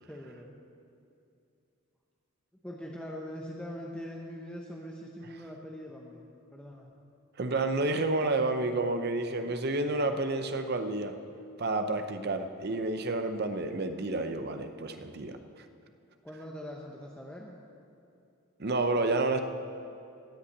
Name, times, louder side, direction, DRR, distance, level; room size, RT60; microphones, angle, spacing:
voice 1, 0.1-0.5 2.6-6.9 16.2-17.6, equal, 5° left, -2 dB, 0.7 m, -42 dB
voice 2, 7.4-11.1 11.6-15.4 18.6-19.4, right 2 dB, 50° right, 8 dB, 0.7 m, -30 dB
16.0 x 5.7 x 8.7 m, 2.6 s
head